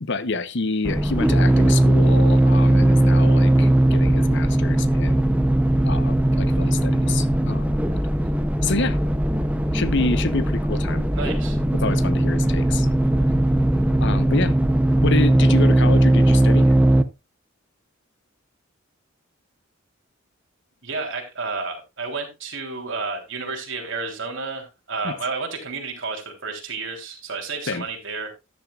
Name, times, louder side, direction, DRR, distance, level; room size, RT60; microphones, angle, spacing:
voice 1, 0.0-5.3 5.8-7.7 8.6-9.0 9.7-11.1 11.7-12.9 14.0-14.6 15.0-16.7 25.0-25.1 27.7-27.8, left 3 dB, 60° left, 1.0 m, -27 dB
sound 1, 0.8-17.0, right 1 dB, 5° right, 0.7 m, -18 dB
voice 2, 11.1-11.6 13.2-13.3 20.8-28.3, right 4 dB, 65° right, 3.6 m, -31 dB
13.5 x 10.5 x 2.4 m
head